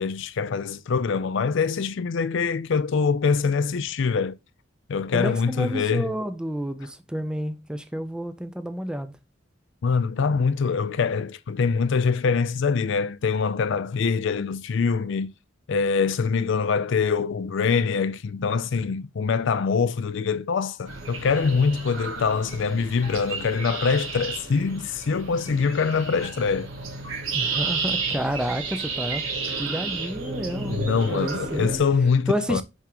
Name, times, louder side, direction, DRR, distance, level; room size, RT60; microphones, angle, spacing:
voice 1, 0.0-4.3 4.9-6.1 9.8-15.3 15.7-26.7 30.7-32.6, left 5 dB, 65° left, 0.4 m, -24 dB
voice 2, 5.1-9.1 27.3-29.3 29.6-30.8 31.1-31.7 32.3-32.6, equal, 5° right, 0.5 m, -30 dB
sound 1, 20.9-31.8, right 4 dB, 85° right, 1.5 m, -32 dB
10.5 x 3.6 x 2.9 m
head